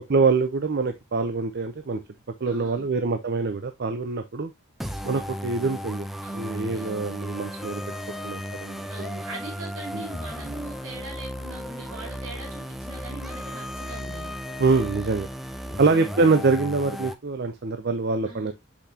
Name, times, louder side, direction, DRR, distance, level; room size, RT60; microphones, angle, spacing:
voice 1, 0.1-2.0 2.4-4.5 5.0-6.1 6.3-7.8 8.2-8.8 9.9-10.0 14.6-15.3 15.8-18.5, right 4 dB, 50° right, 0.6 m, -24 dB
voice 2, 2.4-2.9 6.2-7.2 8.9-14.3 15.6-16.1 18.2-18.5, right 2 dB, 70° right, 3.8 m, -41 dB
sound 1, 4.8-17.2, equal, ahead, 0.5 m, -35 dB
6.2 x 5.7 x 2.7 m
head